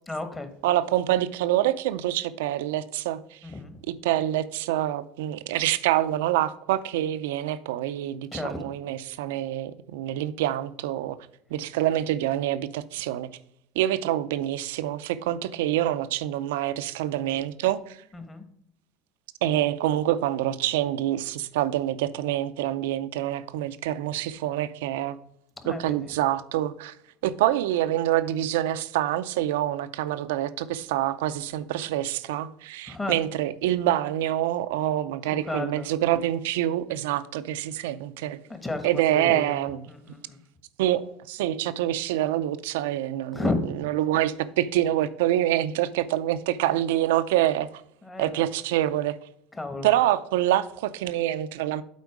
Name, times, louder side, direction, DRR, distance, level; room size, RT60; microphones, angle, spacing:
voice 1, 0.1-0.5 3.4-3.8 8.3-8.7 18.1-18.4 25.6-26.1 32.9-33.2 35.2-35.9 38.5-40.4 43.3-43.6 48.0-48.5 49.5-49.9, left 2 dB, 15° left, 1.3 m, -33 dB
voice 2, 0.6-3.2 4.0-11.2 11.5-13.3 13.8-18.0 19.4-25.2 25.7-26.9 27.2-38.4 38.8-39.8 40.8-43.4 44.0-47.7 48.2-49.1 49.8-51.8, right 13 dB, 80° right, 0.5 m, -26 dB
8.2 x 4.4 x 4.8 m
supercardioid pair, 100°, 0 cm